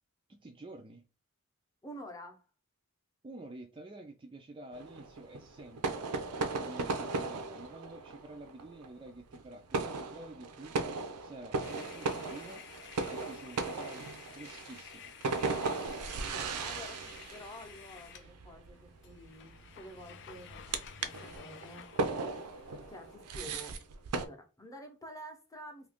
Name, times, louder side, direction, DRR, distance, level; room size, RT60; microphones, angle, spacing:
voice 1, 0.3-1.1 3.2-6.0 6.4-10.8 11.2-12.6 13.1-15.1, right 2 dB, 25° right, 0.3 m, -49 dB
voice 2, 1.8-2.4 16.3-22.3 22.9-23.8 24.1-25.9, equal, 15° left, 0.7 m, -49 dB
sound 1, 4.7-24.3, right 3 dB, 90° right, 0.5 m, -37 dB
sound 2, 11.6-18.3 18.7-18.8 19.0-23.2, left 8 dB, 55° left, 0.4 m, -53 dB
2.7 x 2.5 x 3.5 m
head